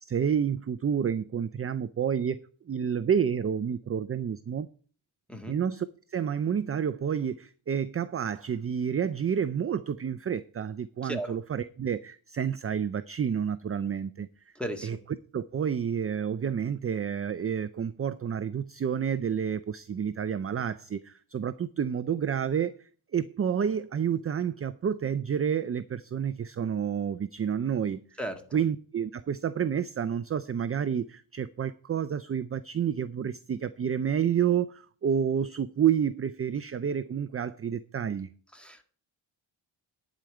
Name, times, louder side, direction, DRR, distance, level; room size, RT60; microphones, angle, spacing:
voice 1, 0.0-2.4 2.7-4.7 5.5-5.9 6.1-14.3 14.8-15.0 15.3-22.8 23.1-28.0 28.5-38.3, right 8 dB, 30° right, 0.4 m, -29 dB
voice 2, 11.0-11.4 14.6-15.0 28.2-28.6 38.5-38.8, right 1 dB, ahead, 1.7 m, -36 dB
11.0 x 5.1 x 8.5 m
wide cardioid pair, 130°, 48 cm